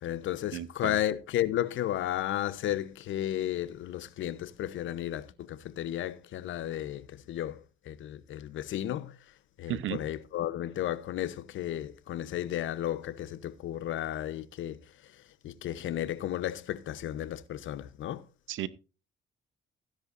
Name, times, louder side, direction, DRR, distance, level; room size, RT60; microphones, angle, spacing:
voice 1, 0.0-7.6 7.8-9.1 9.6-14.8 15.4-18.2, left 12 dB, 75° left, 0.9 m, -33 dB
voice 2, 0.5-1.0 9.7-10.0 18.5-18.7, right 13 dB, 80° right, 0.9 m, -34 dB
15.5 x 10.5 x 2.6 m
cardioid pair, 90°, 20 cm